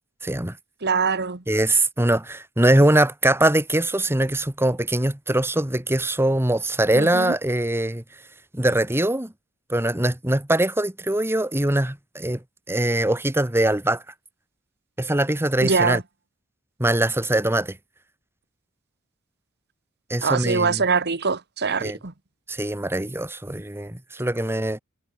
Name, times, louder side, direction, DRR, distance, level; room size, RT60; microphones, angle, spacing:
voice 1, 0.2-0.6 1.5-8.0 8.5-9.3 9.7-12.4 12.7-14.0 15.0-16.0 16.8-17.8 20.1-20.8 21.8-22.0 22.5-24.8, right 1 dB, 10° right, 1.3 m, -22 dB
voice 2, 0.8-1.4 6.9-7.4 15.6-16.0 20.2-22.1, right 4 dB, 50° right, 1.6 m, -23 dB
head